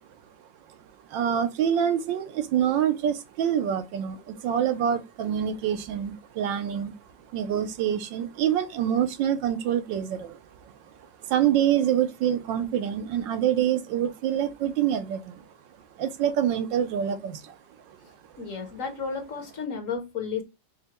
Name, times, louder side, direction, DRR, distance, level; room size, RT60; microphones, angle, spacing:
voice 1, 1.1-6.9 7.3-10.7 11.2-15.5 16.0-17.6 17.9-18.0, right 9 dB, 80° right, 1.4 m, -26 dB
voice 2, 18.4-20.4, left 5 dB, 50° left, 1.1 m, -32 dB
5.6 x 2.2 x 2.9 m
omnidirectional pair, 2.0 m